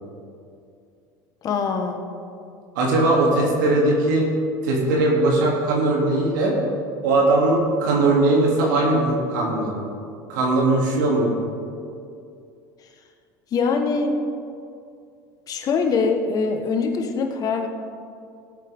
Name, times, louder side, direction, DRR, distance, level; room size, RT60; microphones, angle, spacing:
voice 1, 1.4-2.0 13.5-14.1 15.5-17.7, left 4 dB, 40° left, 4 dB, 1.5 m, -23 dB
voice 2, 2.7-4.3 4.6-6.5 7.0-9.7 10.3-11.3, right 2 dB, 85° right, -3 dB, 3.0 m, -19 dB
17.5 x 8.4 x 3.8 m, 2.5 s
supercardioid pair, 110°, 10 cm